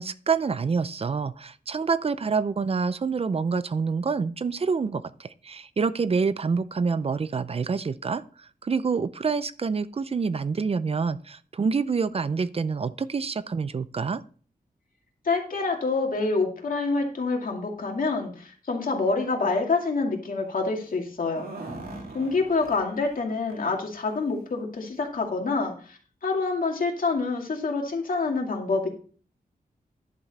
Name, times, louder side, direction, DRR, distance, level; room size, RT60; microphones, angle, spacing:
voice 1, 0.0-8.2 8.6-14.2, right 5 dB, 40° right, 15 dB, 0.5 m, -27 dB
voice 2, 15.2-21.4 22.1-28.9, left 3 dB, 65° left, 2 dB, 2.3 m, -27 dB
sound 1, 21.2-23.2 23.5-23.6 24.0-24.2 25.0-25.1 25.5-25.6, right 2 dB, 85° right, 2.9 m, -40 dB
11.0 x 7.0 x 4.1 m, 0.42 s
wide cardioid pair, 135°, 15 cm